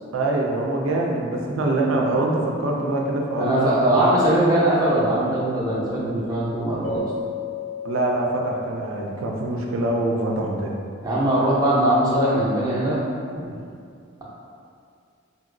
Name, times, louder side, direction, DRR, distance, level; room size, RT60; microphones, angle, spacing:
voice 1, 0.1-4.1 7.8-10.8, right 2 dB, 80° right, 0 dB, 0.4 m, -24 dB
voice 2, 3.4-7.0 11.0-13.0 13.3-13.5, right 1 dB, 20° right, -7 dB, 0.6 m, -21 dB
Keyboard (musical), 6.8-9.3, left 4 dB, 35° left, 0.7 m, -33 dB
2.8 x 2.8 x 2.6 m, 2.4 s
head